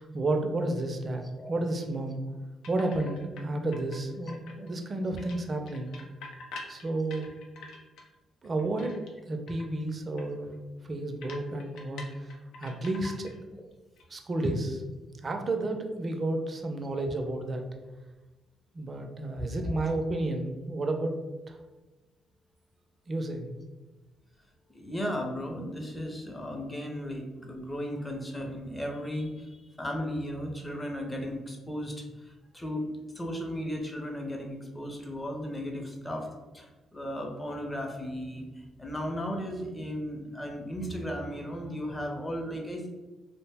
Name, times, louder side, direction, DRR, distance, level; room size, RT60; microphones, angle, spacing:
voice 1, 0.0-2.2 2.7-5.9 6.7-7.3 8.4-9.0 9.2-10.5 10.8-13.3 14.1-14.8 15.2-17.6 18.7-21.2 21.5-21.6 23.1-23.5, right 2 dB, 35° right, 4 dB, 0.4 m, -31 dB
sound 1, 2.6-3.4 3.7-4.8 5.2-8.1 8.4-9.2 9.5-9.7 10.2-10.3 10.5-10.6 11.2-13.4 13.7-14.0, left 3 dB, 85° left, 0.5 m, -45 dB
voice 2, 24.7-32.9 33.1-42.9, equal, 15° left, 1 dB, 0.6 m, -35 dB
2.5 x 2.1 x 3.3 m, 1.2 s
cardioid pair, 90°, 0 cm